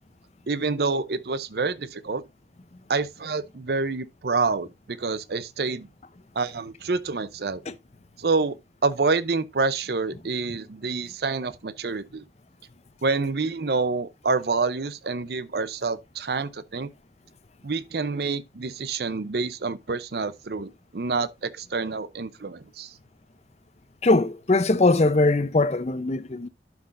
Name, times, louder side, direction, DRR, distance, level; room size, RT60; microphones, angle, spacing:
voice 1, 0.5-2.2 2.9-5.9 6.3-7.6 8.2-8.5 8.8-12.2 13.0-16.9 17.6-22.9, right 4 dB, 60° right, 0.6 m, -27 dB
voice 2, 24.0-26.5, left 2 dB, 35° left, 0.6 m, -21 dB
11.5 x 6.1 x 2.5 m
head